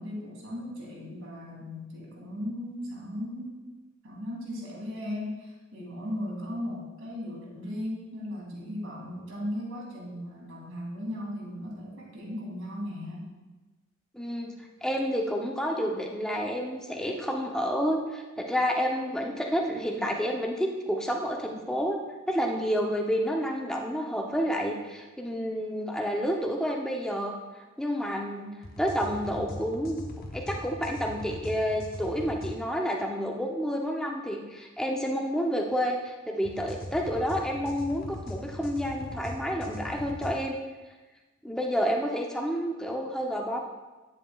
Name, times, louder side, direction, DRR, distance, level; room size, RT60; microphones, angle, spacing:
voice 1, 0.0-3.7 4.0-13.3 15.8-15.9, left 1 dB, 80° right, -2 dB, 2.2 m, -37 dB
voice 2, 14.1-14.5 14.8-22.0 22.3-27.4 27.8-28.5 28.8-30.0 30.3-40.5 41.4-43.6, equal, 5° left, 0 dB, 0.6 m, -29 dB
sound 1, 28.6-32.5 36.4-40.3, left 1 dB, 45° left, 0.8 m, -40 dB
9.4 x 7.5 x 2.3 m, 1.2 s
head